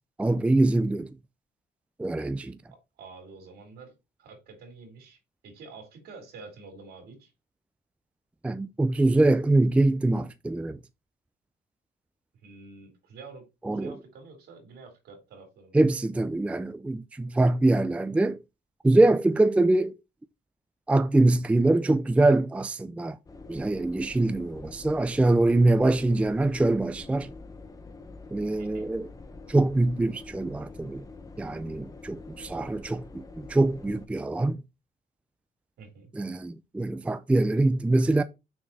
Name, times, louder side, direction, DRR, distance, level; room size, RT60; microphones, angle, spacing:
voice 1, 0.2-1.1 2.0-2.6 8.4-10.8 13.7-13.9 15.7-18.4 18.8-19.9 20.9-23.2 23.5-27.3 28.3-29.1 29.5-31.0 31.4-34.6 36.1-38.2, right 2 dB, 10° right, 0.4 m, -24 dB
voice 2, 3.0-5.2 5.4-7.3 12.4-13.5 13.7-15.8 28.6-28.9 35.8-36.1, right 4 dB, 85° right, 3.1 m, -48 dB
sound 1, 23.3-34.1, left 3 dB, 20° left, 0.8 m, -46 dB
6.1 x 4.3 x 4.1 m
cardioid pair, 115°, 16 cm